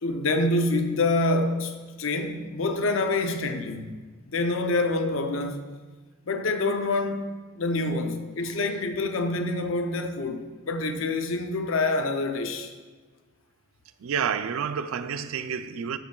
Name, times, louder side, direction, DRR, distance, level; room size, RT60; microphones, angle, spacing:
voice 1, 0.0-4.0 4.3-5.6 6.3-7.3 7.6-12.7, left 2 dB, 70° left, 0.6 m, -26 dB
voice 2, 14.0-16.0, right 7 dB, 85° right, 0.4 m, -29 dB
12.0 x 5.3 x 2.3 m
head